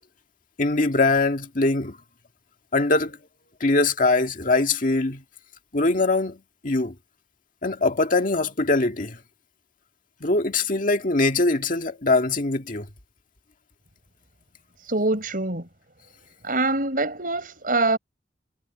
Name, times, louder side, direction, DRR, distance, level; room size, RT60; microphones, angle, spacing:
voice 1, 0.6-2.0 2.7-3.2 3.6-5.2 5.7-6.9 7.6-9.2 10.2-12.9, left 3 dB, 50° left, 2.0 m, -22 dB
voice 2, 14.8-15.7 16.4-18.0, right 2 dB, 50° right, 6.9 m, -24 dB
head